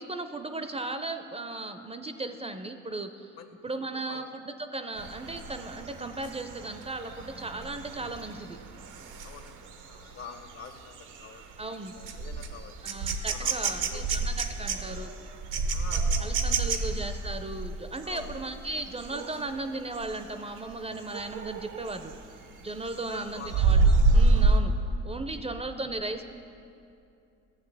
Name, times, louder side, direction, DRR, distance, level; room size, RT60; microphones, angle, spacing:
voice 1, 0.0-3.3 3.6-8.6 11.6-12.0 12.8-15.1 16.2-22.1 22.6-24.8 25.0-26.2, right 2 dB, 20° right, 8 dB, 0.4 m, -36 dB
voice 2, 3.9-4.3 9.2-12.7 13.3-14.1 15.7-16.9 18.0-18.4 22.9-23.6 24.8-24.9, left 6 dB, 60° left, 7 dB, 0.8 m, -46 dB
sound 1, 5.0-19.5 19.9-20.2 20.6-22.2 22.6-24.6, right 3 dB, 85° right, 0.7 m, -28 dB
13.5 x 7.6 x 3.4 m, 2.6 s
cardioid pair, 90°, 30 cm